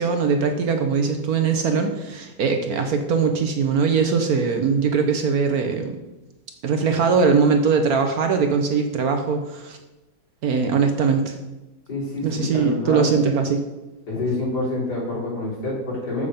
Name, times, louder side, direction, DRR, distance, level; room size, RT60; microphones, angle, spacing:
voice 1, 0.0-6.0 6.6-9.8 10.4-11.4 12.2-13.6, right 5 dB, 65° right, 5 dB, 1.1 m, -21 dB
voice 2, 11.9-13.1 14.1-16.3, left 2 dB, 60° left, -6 dB, 4.1 m, -27 dB
7.4 x 6.7 x 5.1 m, 1.0 s
omnidirectional pair, 1.9 m